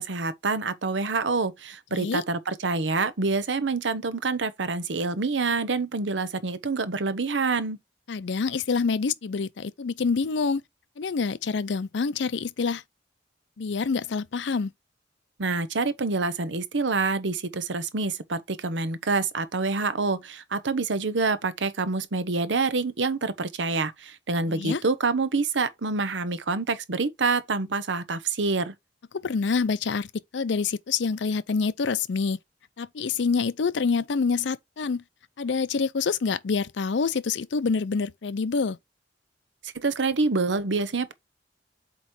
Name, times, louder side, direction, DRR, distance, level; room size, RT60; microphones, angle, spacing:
voice 1, 0.0-7.8 15.4-28.7 39.7-41.1, right 3 dB, 85° right, 0.9 m, -27 dB
voice 2, 1.9-2.2 8.1-10.6 11.0-12.8 13.6-14.7 24.5-24.8 29.1-30.1 30.3-32.4 32.8-35.0 35.4-38.8, left 5 dB, 75° left, 0.5 m, -26 dB
8.1 x 3.1 x 4.4 m
head